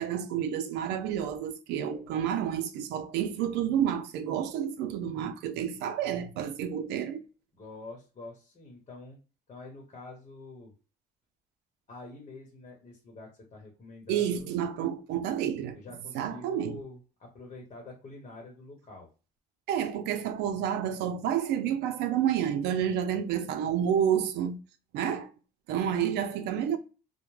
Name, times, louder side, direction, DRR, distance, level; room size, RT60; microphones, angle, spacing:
voice 1, 0.0-7.2 14.1-15.8 16.1-16.8 19.7-24.6 24.9-25.3 25.7-26.8, right 9 dB, 85° right, 0.4 m, -29 dB
voice 2, 7.5-9.2 9.5-10.7 11.9-14.5 15.7-19.1, left 2 dB, 40° left, 0.9 m, -46 dB
2.1 x 2.1 x 3.1 m
cardioid pair, 110°, 17 cm